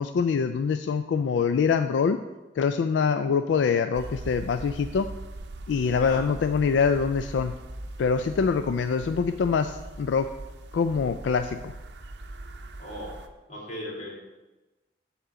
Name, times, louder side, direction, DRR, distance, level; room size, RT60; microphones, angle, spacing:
voice 1, 0.0-2.2 2.6-5.1 5.7-7.5 8.0-10.3 10.7-11.7, left 5 dB, 85° left, 9 dB, 0.3 m, -24 dB
sound 1, 3.9-13.3, right 1 dB, 70° right, 0.6 m, -41 dB
voice 2, 12.8-13.2 13.5-14.2, equal, 40° left, -5 dB, 2.5 m, -37 dB
7.3 x 4.4 x 6.9 m, 1.1 s
head